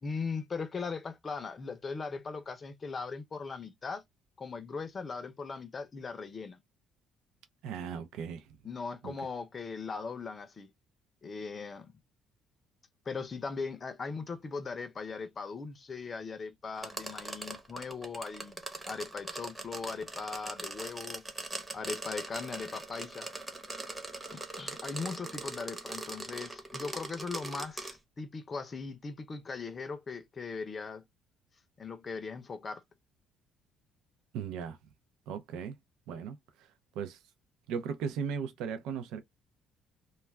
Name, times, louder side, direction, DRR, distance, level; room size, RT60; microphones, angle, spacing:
voice 1, 0.0-4.0 4.4-6.6 8.6-10.7 11.2-11.9 13.1-18.6 18.8-21.2 21.7-23.3 24.3-31.0 31.8-32.8, left 4 dB, 30° left, 0.5 m, -39 dB
voice 2, 7.6-8.4 9.0-9.1 34.3-34.8 35.3-35.8 36.1-36.4 37.0-37.2 37.7-39.2, right 7 dB, 85° right, 0.4 m, -36 dB
sound 1, 16.8-28.0, right 2 dB, 10° right, 0.7 m, -41 dB
2.3 x 2.2 x 3.2 m
cardioid pair, 125°, 0 cm